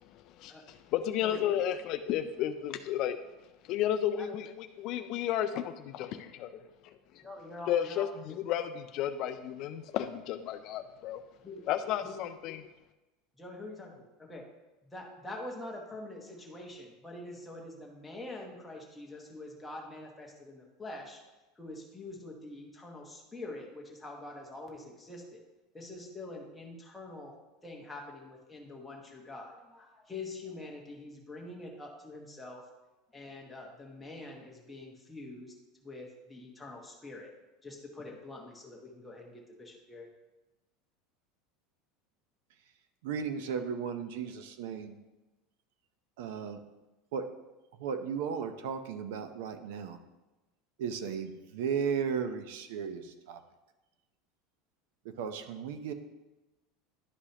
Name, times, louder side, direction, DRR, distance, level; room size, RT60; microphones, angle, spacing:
voice 1, 0.1-3.2 3.7-6.5 7.7-11.2 11.7-12.6, left 10 dB, 40° left, 8 dB, 0.3 m, -33 dB
voice 2, 1.2-1.6 4.2-4.3 7.2-8.4 11.4-11.7 12.0-12.2 13.4-14.5 14.9-21.2 21.6-25.4 25.7-27.4 27.6-32.7 33.1-35.5 35.8-37.3 37.6-40.1, left 2 dB, 5° left, -1 dB, 1.0 m, -45 dB
voice 3, 43.0-45.0 46.2-46.6 47.1-47.3 47.8-50.0 50.8-53.4 55.0-55.9, right 6 dB, 70° right, 9 dB, 0.6 m, -35 dB
11.5 x 4.9 x 2.8 m, 1.1 s
supercardioid pair, 180°, 0 cm